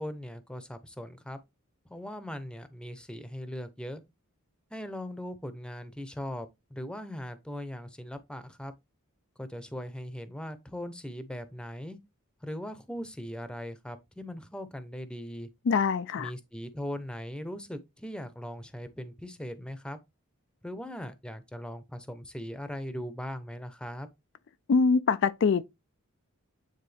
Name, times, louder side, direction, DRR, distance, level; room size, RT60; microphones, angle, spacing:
voice 1, 0.0-1.4 1.9-4.0 4.7-8.7 9.4-12.0 12.4-15.5 16.2-20.0 20.6-24.1, equal, 5° left, 0.8 m, -39 dB
voice 2, 15.7-16.3 24.7-25.6, left 5 dB, 55° left, 0.4 m, -24 dB
9.2 x 3.7 x 3.4 m
head